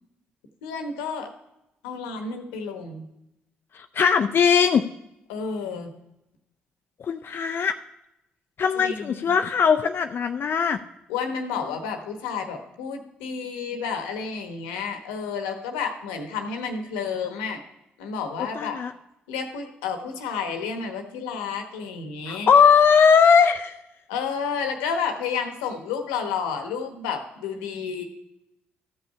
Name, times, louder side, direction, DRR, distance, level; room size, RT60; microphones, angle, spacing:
voice 1, 0.6-1.3 1.8-3.1 5.3-5.9 8.7-9.3 11.1-17.6 18.0-18.8 19.3-22.5 24.1-28.0, left 6 dB, 85° left, 5 dB, 1.0 m, -31 dB
voice 2, 3.7-4.9 7.0-7.8 8.6-10.8 18.5-18.9 22.3-23.7, left 6 dB, 50° left, 6 dB, 0.4 m, -19 dB
13.0 x 5.6 x 5.5 m, 0.88 s
hypercardioid pair, 45°, 5 cm